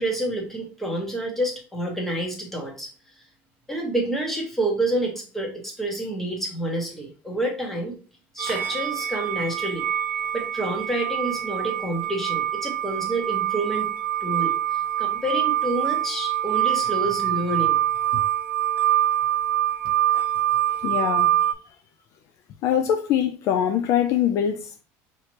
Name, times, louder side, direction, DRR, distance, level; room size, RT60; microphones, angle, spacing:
voice 1, 0.0-2.9 3.7-7.9 8.3-9.9 10.3-13.9 14.2-14.5 15.0-17.8, right 1 dB, 5° left, 1.1 m, -28 dB
sound 1, 8.4-21.5, right 12 dB, 30° right, 0.6 m, -25 dB
voice 2, 20.8-21.3 22.6-24.8, left 9 dB, 50° left, 0.4 m, -23 dB
4.9 x 3.1 x 2.9 m
cardioid pair, 150°, 7 cm